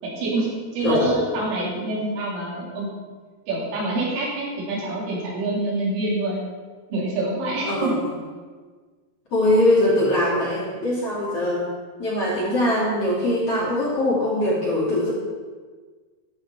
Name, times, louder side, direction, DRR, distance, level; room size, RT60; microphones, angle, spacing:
voice 1, 0.0-2.9 3.5-6.4 6.9-8.0, right 2 dB, 85° right, -5 dB, 6.3 m, -26 dB
voice 2, 7.6-8.0 9.3-11.7 12.0-15.1, left 1 dB, 40° left, -6 dB, 2.5 m, -22 dB
15.5 x 11.5 x 4.2 m, 1.5 s
omnidirectional pair, 5.6 m